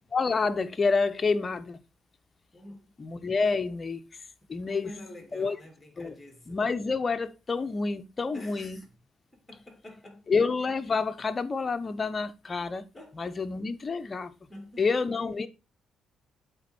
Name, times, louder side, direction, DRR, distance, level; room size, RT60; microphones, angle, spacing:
voice 1, 0.1-1.8 3.0-4.1 4.5-4.9 5.3-5.6 6.0-6.1 6.5-8.8 10.3-12.9 13.2-14.3 14.8-15.5, left 4 dB, 35° left, 0.8 m, -28 dB
voice 2, 2.5-2.8 4.6-6.6 8.3-8.9 9.3-10.3 12.9-13.4 14.5-14.8, left 1 dB, 15° left, 2.5 m, -47 dB
8.1 x 4.2 x 4.4 m
cardioid pair, 90°, 0 cm